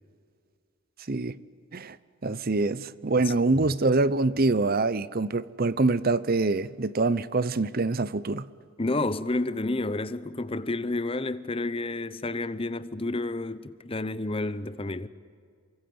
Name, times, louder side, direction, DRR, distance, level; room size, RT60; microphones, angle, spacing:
voice 1, 2.2-8.5, right 3 dB, 45° right, 0.7 m, -25 dB
voice 2, 8.8-15.1, left 2 dB, 25° left, 0.8 m, -30 dB
28.0 x 24.0 x 7.9 m
head